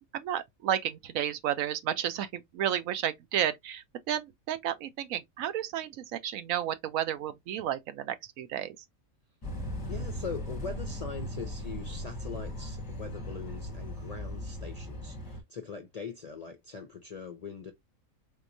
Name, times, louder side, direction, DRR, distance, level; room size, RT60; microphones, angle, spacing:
voice 1, 0.1-8.8, right 10 dB, 80° right, 1.0 m, -32 dB
sound 1, 9.4-15.4, left 1 dB, 20° left, 0.7 m, -38 dB
voice 2, 9.9-17.7, left 5 dB, 55° left, 0.4 m, -42 dB
3.7 x 2.9 x 2.5 m
omnidirectional pair, 1.4 m